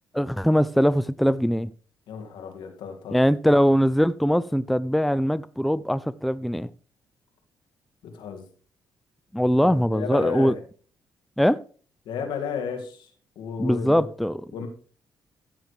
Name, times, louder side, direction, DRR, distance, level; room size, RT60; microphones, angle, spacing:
voice 1, 0.1-1.7 3.1-6.7 9.3-10.5 11.4-11.6 13.6-14.4, equal, ahead, 0.5 m, -21 dB
voice 2, 2.1-3.2 8.0-8.5 9.6-10.6 12.1-14.1 14.5-14.7, left 6 dB, 75° left, 2.2 m, -33 dB
14.5 x 7.3 x 3.3 m
hypercardioid pair, 50°, 8 cm